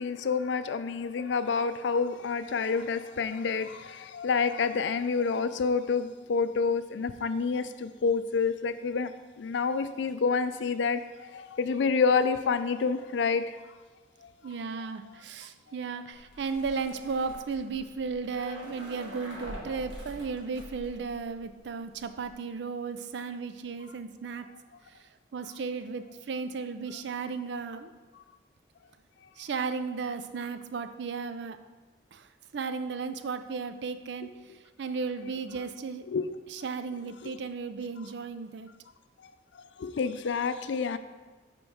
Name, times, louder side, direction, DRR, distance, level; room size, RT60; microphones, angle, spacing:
voice 1, 0.0-9.1 9.4-13.6 36.1-36.3 37.2-37.3 39.2-39.3 39.8-41.0, left 5 dB, 75° left, 12 dB, 0.4 m, -28 dB
voice 2, 14.4-24.5 24.9-27.9 29.4-31.6 32.1-36.1 36.5-38.7, right 5 dB, 70° right, 10 dB, 0.4 m, -35 dB
sound 1, 16.1-21.7 22.0-22.3, equal, 85° right, 1.7 m, -44 dB
5.3 x 4.6 x 5.8 m, 1.3 s
head